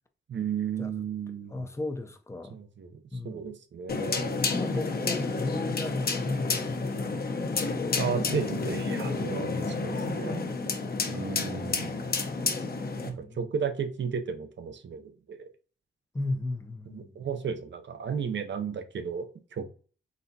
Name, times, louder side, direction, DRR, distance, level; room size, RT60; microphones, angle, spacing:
voice 1, 0.3-1.6 2.5-4.4 8.0-10.4 11.1-12.2 13.0-15.0 15.3-15.5 16.9-19.7, right 6 dB, 70° right, 0.6 m, -34 dB
voice 2, 1.5-2.6 3.1-3.5 4.5-6.9 9.0-9.4 11.2-11.8 13.0-13.4 16.1-17.2, left 2 dB, 15° left, 0.5 m, -36 dB
sound 1, 3.9-13.1, left 4 dB, 50° left, 0.7 m, -30 dB
4.0 x 3.4 x 2.7 m
wide cardioid pair, 95°, 20 cm